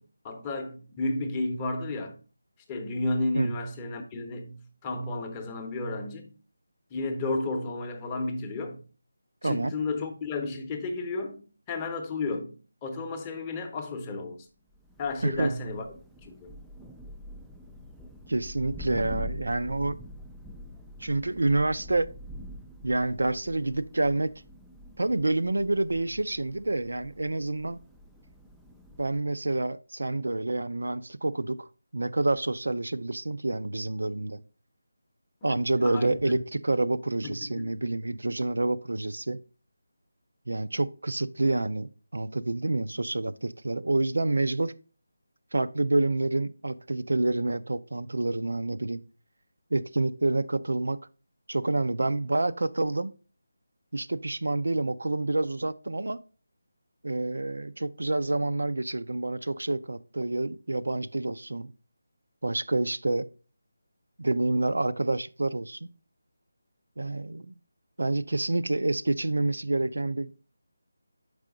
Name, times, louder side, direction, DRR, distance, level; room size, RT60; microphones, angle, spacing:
voice 1, 0.0-2.2 2.7-6.3 6.9-8.8 9.4-14.5 15.0-15.9 16.2-16.5 35.4-36.3 37.2-37.9, left 2 dB, 15° left, 0.7 m, -33 dB
voice 2, 9.4-9.7 15.2-15.5 18.3-20.0 21.0-22.1 22.8-24.3 25.0-27.8 29.0-31.7 31.9-34.4 35.4-39.4 40.5-44.8 45.5-49.0 49.7-51.0 51.5-53.1 53.9-56.2 57.0-61.7 62.4-63.3 64.2-65.9 67.0-67.5 68.0-70.3, right 2 dB, 85° right, 0.4 m, -28 dB
Thunder, 14.7-29.3, left 1 dB, ahead, 0.3 m, -45 dB
6.6 x 4.8 x 3.8 m
figure-of-eight pair, 170°, 0 cm